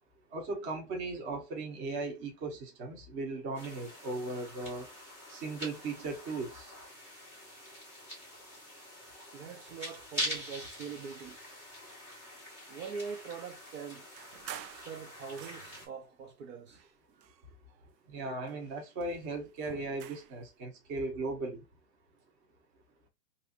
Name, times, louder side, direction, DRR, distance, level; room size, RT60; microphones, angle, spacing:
voice 1, 0.3-4.9 5.3-6.7 18.1-21.6, right 3 dB, 25° right, 0.9 m, -37 dB
sound 1, 3.5-15.9, left 1 dB, 5° right, 0.4 m, -44 dB
voice 2, 9.3-11.4 12.7-14.1 14.7-16.9, right 6 dB, 55° right, 0.8 m, -43 dB
sound 2, 14.1-16.0 16.7-17.9 18.2-20.4, right 10 dB, 90° right, 0.7 m, -49 dB
3.2 x 2.7 x 2.8 m
supercardioid pair, 155°, 49 cm